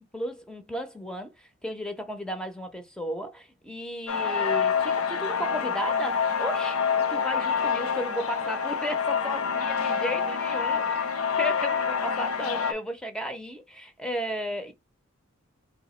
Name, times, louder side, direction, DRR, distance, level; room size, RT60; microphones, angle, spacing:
voice 1, 0.1-11.1 11.4-14.7, equal, 5° left, 0.6 m, -34 dB
sound 1, 4.1-12.7, left 6 dB, 80° left, 0.6 m, -27 dB
3.1 x 2.8 x 4.2 m
head